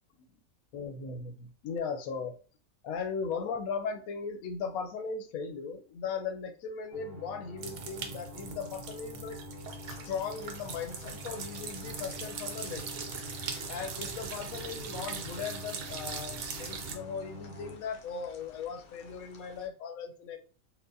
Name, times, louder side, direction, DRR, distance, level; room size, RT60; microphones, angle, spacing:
voice 1, 0.7-2.3 2.8-9.4 9.9-12.9 13.7-20.4, left 5 dB, 85° left, 6 dB, 1.1 m, -38 dB
sound 1, 6.9-17.8, left 2 dB, 50° right, 1.1 m, -47 dB
sound 2, 7.6-16.9, right 6 dB, 80° right, 1.0 m, -41 dB
sound 3, 9.8-19.7, left 4 dB, 60° left, 0.6 m, -55 dB
4.6 x 2.0 x 2.6 m, 0.39 s
omnidirectional pair, 1.4 m